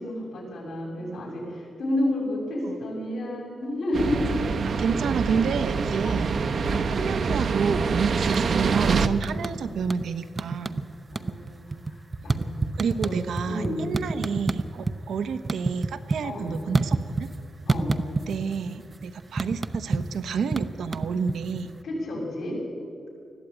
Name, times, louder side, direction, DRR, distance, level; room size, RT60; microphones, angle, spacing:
voice 1, 0.0-4.5 6.0-6.2 6.7-6.8 9.3-9.5 11.1-11.6 12.2-12.6 13.0-13.2 13.5-13.9 16.2-16.6 17.7-17.9 21.8-22.6, left 1 dB, 75° left, -1 dB, 6.9 m, -30 dB
sound 1, 3.9-9.1, right 5 dB, 55° right, 0.9 m, -25 dB
voice 2, 4.7-6.3 6.8-10.8 12.7-17.3 18.3-21.8, right 6 dB, 85° right, 8 dB, 1.1 m, -29 dB
sound 2, 8.2-8.7 9.0-10.1 10.4-10.9 11.1-15.0 15.3-17.4 17.7-18.6 18.8-21.7, right 3 dB, 25° right, 0.7 m, -28 dB
21.0 x 14.0 x 9.2 m, 2.4 s
wide cardioid pair, 145°, 0 cm